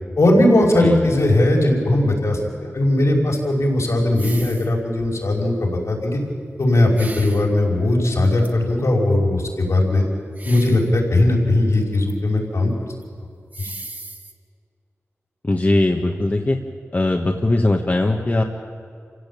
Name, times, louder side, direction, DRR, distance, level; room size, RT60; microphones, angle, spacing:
voice 1, 0.2-6.2 6.6-10.0 10.4-12.7 13.6-13.7, left 1 dB, 75° left, -1 dB, 5.5 m, -18 dB
sound 1, 4.2-4.7 5.0-5.3 7.0-7.5 8.4-8.5 10.3-10.9 11.2-12.1 12.4-12.5 13.0-13.1 13.5-14.3, right 2 dB, 35° right, 2.0 m, -37 dB
voice 2, 15.4-16.6 16.9-18.4, left 2 dB, 35° left, 2 dB, 1.6 m, -20 dB
28.0 x 16.5 x 8.7 m, 2.3 s
wide cardioid pair, 80°, 5 cm